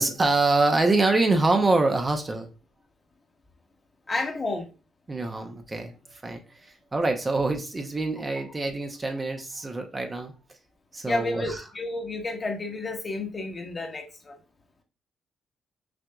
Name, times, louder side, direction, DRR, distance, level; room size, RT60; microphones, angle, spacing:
voice 1, 0.0-2.5 5.1-5.9 6.2-10.3 10.9-11.6, right 2 dB, 25° right, 0.7 m, -25 dB
voice 2, 4.1-4.7 11.0-14.4, left 2 dB, 30° left, 1.0 m, -31 dB
5.9 x 2.5 x 2.3 m
cardioid pair, 90°, 0 cm